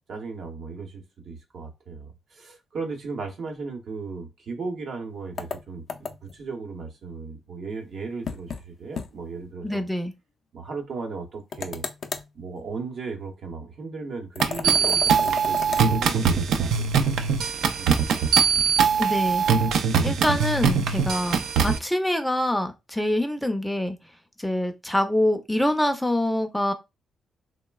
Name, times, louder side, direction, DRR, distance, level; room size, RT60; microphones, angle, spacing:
voice 1, 0.1-5.8 6.2-9.8 10.5-11.8 12.3-16.9 17.8-18.7, right 4 dB, 65° right, 0.8 m, -36 dB
sound 1, 5.4-6.4 8.3-8.6 9.0-9.1 9.4-9.5 11.5-12.3 14.4-15.9, left 5 dB, 55° left, 0.4 m, -34 dB
voice 2, 9.6-10.1 19.0-19.4 20.0-24.0 24.4-26.7, left 1 dB, 5° left, 0.5 m, -25 dB
sound 2, 14.4-21.8, right 6 dB, 80° right, 0.3 m, -22 dB
3.1 x 2.0 x 2.3 m
cardioid pair, 75°, 0 cm